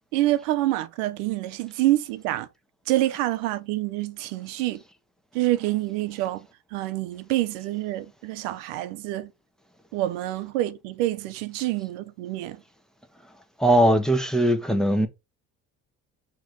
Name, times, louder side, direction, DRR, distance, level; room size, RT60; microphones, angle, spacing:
voice 1, 0.1-2.5 2.9-4.8 5.3-9.3 9.9-12.6, right 16 dB, 90° right, 0.8 m, -27 dB
voice 2, 13.6-15.1, right 1 dB, ahead, 1.4 m, -20 dB
6.2 x 3.2 x 5.2 m
supercardioid pair, 85°, 35 cm